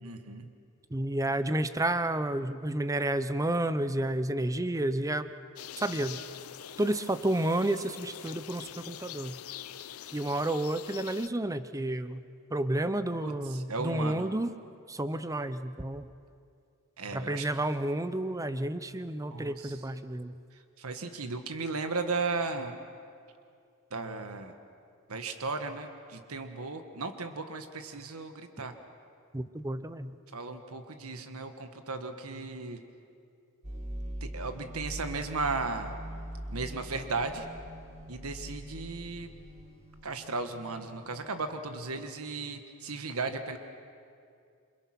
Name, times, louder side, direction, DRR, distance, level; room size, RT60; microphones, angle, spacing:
voice 1, 0.0-0.5 13.2-14.3 17.0-17.5 19.3-19.8 20.8-22.7 23.9-24.5 25.1-28.7 30.3-32.8 34.2-36.0 36.5-37.5 38.1-39.3 40.0-43.6, right 3 dB, 85° right, 7 dB, 1.6 m, -35 dB
voice 2, 0.9-5.2 5.8-6.2 6.8-9.4 10.1-12.2 12.5-14.5 14.9-16.1 17.1-20.3 29.3-30.2, right 1 dB, 15° right, 12 dB, 0.7 m, -31 dB
sound 1, 5.6-11.3, left 10 dB, 85° left, 0.7 m, -44 dB
sound 2, 33.6-41.6, right 1 dB, 35° right, 2.2 m, -42 dB
28.0 x 26.0 x 6.1 m, 2.4 s
head